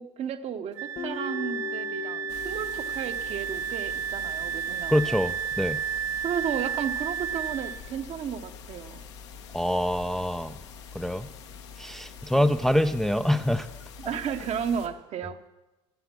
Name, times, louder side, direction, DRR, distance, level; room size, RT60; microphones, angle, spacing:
voice 1, 0.0-5.2 6.2-9.0 12.4-12.5 14.0-15.4, right 8 dB, 50° right, 9 dB, 0.9 m, -33 dB
Wind instrument woodwind instrument, 0.8-7.8, right 8 dB, 85° right, 0.8 m, -32 dB
Guitar, 1.0-4.3, left 8 dB, 45° left, 1.3 m, -40 dB
sound 1, 2.3-14.9, left 6 dB, 85° left, 1.2 m, -45 dB
voice 2, 4.9-5.8 9.5-10.6 10.9-11.3 11.8-13.7, equal, 5° left, 9 dB, 0.4 m, -25 dB
10.5 x 10.0 x 5.9 m, 1.0 s
hypercardioid pair, 80°, 14 cm